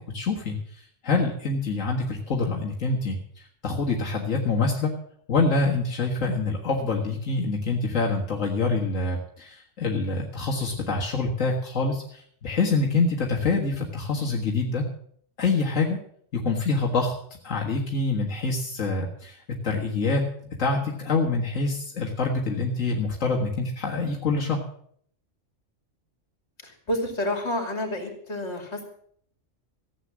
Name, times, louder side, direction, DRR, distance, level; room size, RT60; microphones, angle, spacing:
voice 1, 0.1-4.9 5.3-14.8 15.4-16.0 16.3-17.1 17.4-19.4 19.6-20.2 20.6-24.6, left 3 dB, 90° left, -1 dB, 2.1 m, -26 dB
voice 2, 26.6-28.9, left 1 dB, 60° left, 3 dB, 3.3 m, -29 dB
15.0 x 8.3 x 7.4 m, 0.62 s
omnidirectional pair, 1.3 m